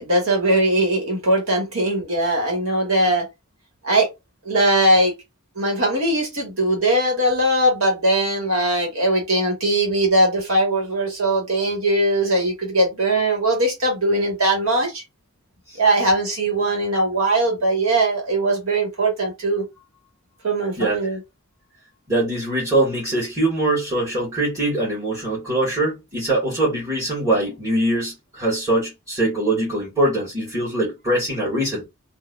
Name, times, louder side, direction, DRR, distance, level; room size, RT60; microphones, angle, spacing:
voice 1, 0.0-3.2 3.8-4.1 4.4-5.1 5.6-15.0 15.8-19.6 20.4-21.2, right 1 dB, 75° right, 1.8 m, -20 dB
voice 2, 20.8-21.2 22.1-31.8, right 1 dB, 15° right, 1.8 m, -22 dB
3.8 x 2.7 x 2.5 m
head